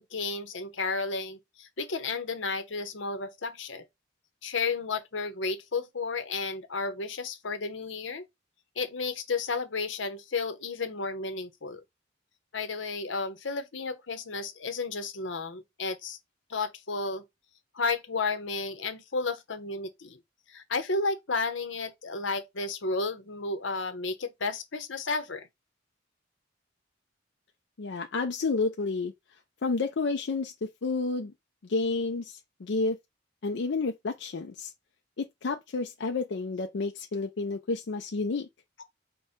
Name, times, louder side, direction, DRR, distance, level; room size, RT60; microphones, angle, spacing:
voice 1, 0.0-3.9 4.4-8.3 8.8-11.8 12.5-16.2 16.5-17.2 17.7-20.2 20.5-25.5, left 3 dB, 90° left, 0.9 m, -32 dB
voice 2, 27.8-29.1 29.6-31.3 31.6-33.0 33.4-34.7 35.2-38.5, left 3 dB, 65° left, 0.5 m, -30 dB
5.3 x 2.2 x 4.1 m
head